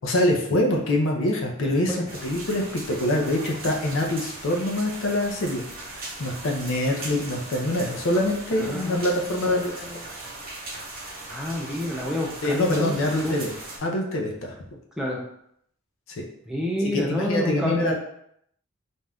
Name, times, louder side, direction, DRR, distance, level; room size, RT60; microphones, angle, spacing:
voice 1, 0.0-9.8 12.4-13.5 13.8-14.5 16.2-16.3 16.9-18.0, left 1 dB, 60° left, 1 dB, 0.5 m, -25 dB
voice 2, 1.6-2.1 8.5-10.0 11.3-13.3 15.0-15.2 16.5-18.0, left 1 dB, ahead, -3 dB, 0.4 m, -29 dB
sound 1, 2.1-13.8, right 2 dB, 40° right, 0.8 m, -39 dB
2.6 x 2.3 x 3.4 m, 0.70 s
head